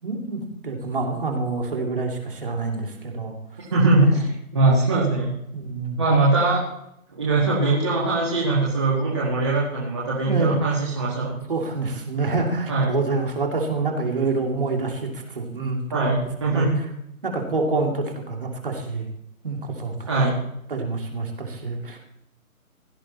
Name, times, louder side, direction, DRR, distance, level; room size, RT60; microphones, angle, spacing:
voice 1, 0.0-3.6 4.0-4.2 5.5-6.0 10.3-10.6 11.5-16.1 16.5-16.9 17.2-19.1 19.4-20.3 20.7-22.0, right 3 dB, 40° right, 1 dB, 2.5 m, -27 dB
voice 2, 3.7-4.2 4.5-5.3 6.0-6.6 7.1-11.4 12.7-13.0 15.9-16.8 20.1-20.4, right 2 dB, 20° right, -6 dB, 1.7 m, -21 dB
16.5 x 12.0 x 4.2 m, 0.78 s
hypercardioid pair, 180°, 43 cm